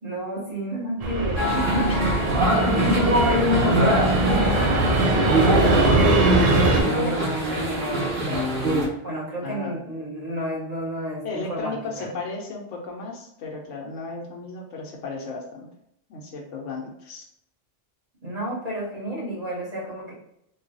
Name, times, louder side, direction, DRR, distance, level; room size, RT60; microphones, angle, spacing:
voice 1, 0.0-1.9 2.5-3.1 3.4-6.5 6.9-8.7 9.0-12.1 18.2-20.1, right 1 dB, 35° right, -9 dB, 1.4 m, -31 dB
Fixed-wing aircraft airplane, 1.0-6.8, right 2 dB, 75° right, 0.3 m, -22 dB
sound 1, 1.4-8.9, equal, 50° right, 1.3 m, -23 dB
voice 2, 1.8-2.4 2.8-2.9 9.4-9.7 11.2-15.7 16.1-17.3, left 3 dB, 90° left, 0 dB, 1.1 m, -35 dB
3.8 x 2.3 x 2.6 m, 0.78 s
omnidirectional pair, 1.2 m